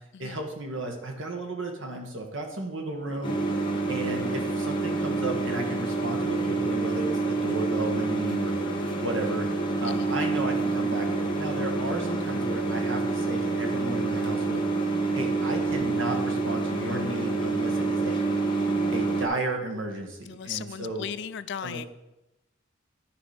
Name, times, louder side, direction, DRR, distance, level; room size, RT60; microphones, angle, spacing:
voice 1, 0.2-3.4 3.9-8.5 9.0-9.5 9.8-14.6 15.1-18.2 18.9-21.1 21.6-21.8, right 2 dB, 75° right, 3 dB, 1.6 m, -34 dB
sound 1, 3.2-19.3, right 3 dB, 25° left, 1.4 m, -27 dB
voice 2, 20.3-21.9, left 8 dB, 60° left, 15 dB, 0.4 m, -37 dB
11.5 x 4.9 x 5.0 m, 0.93 s
head